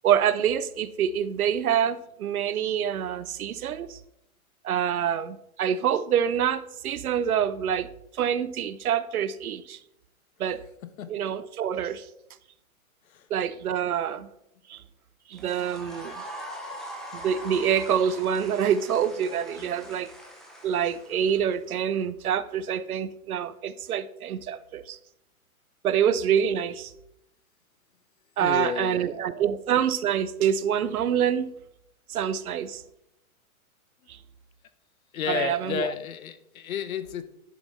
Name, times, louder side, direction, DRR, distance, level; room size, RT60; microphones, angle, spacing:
voice 1, 0.0-4.0 4.6-7.9 8.2-9.8 10.4-10.6 11.1-12.1 13.3-14.3 14.7-14.8 15.3-16.1 17.1-20.1 20.6-25.0 25.8-26.9 28.4-31.5 32.1-32.8 35.3-35.9, right 8 dB, 80° right, 0.8 m, -26 dB
voice 2, 10.8-11.2 13.1-13.3 19.6-20.0 28.4-29.4 35.1-37.2, left 8 dB, 70° left, 1.0 m, -33 dB
sound 1, 15.3-21.7, equal, ahead, 0.5 m, -42 dB
10.5 x 5.5 x 4.0 m
hypercardioid pair, 145°, 43 cm